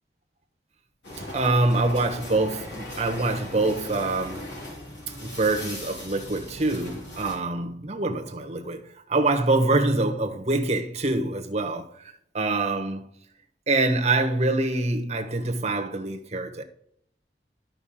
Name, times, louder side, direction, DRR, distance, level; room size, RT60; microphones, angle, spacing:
sound 1, 1.0-7.3, left 1 dB, 85° left, 3.8 m, -39 dB
voice 1, 1.3-4.5 5.2-13.1 13.7-16.6, right 2 dB, 40° right, 1.2 m, -25 dB
12.5 x 5.4 x 3.7 m
head